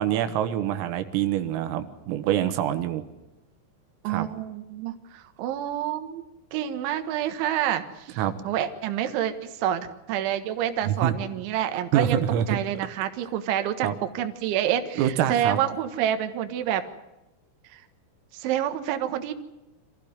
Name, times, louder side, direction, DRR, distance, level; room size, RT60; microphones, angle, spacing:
voice 1, 0.0-3.0 4.1-4.3 8.2-8.3 10.9-11.1 11.9-12.6 13.8-13.9 15.0-15.6, right 10 dB, 90° right, 9 dB, 4.1 m, -25 dB
voice 2, 4.0-6.3 6.5-8.2 8.5-12.2 12.5-16.9 17.7-17.8 18.3-19.3, right 10 dB, 70° right, 7 dB, 3.7 m, -28 dB
26.5 x 15.5 x 9.7 m, 0.98 s
omnidirectional pair, 5.8 m